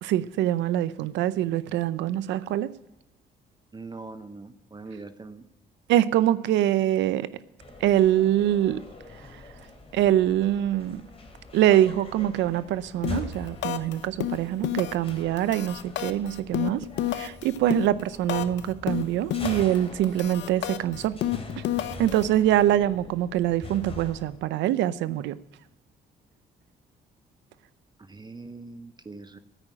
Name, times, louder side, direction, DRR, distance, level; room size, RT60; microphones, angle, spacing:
voice 1, 0.0-2.7 5.9-7.3 7.8-8.8 9.9-11.0 11.5-16.8 17.1-21.2 22.0-25.4, right 12 dB, 90° right, 17 dB, 0.6 m, -24 dB
voice 2, 3.7-5.4 28.1-29.4, right 3 dB, 25° right, 11 dB, 0.8 m, -42 dB
sound 1, 7.6-24.4, left 2 dB, 30° left, 3.0 m, -43 dB
sound 2, 13.0-13.3 13.6-13.9 14.2-15.1 15.4-18.6 18.9-19.8 20.0-22.2, left 12 dB, 80° left, 0.8 m, -29 dB
9.9 x 8.9 x 9.0 m, 0.93 s
cardioid pair, 75°, 18 cm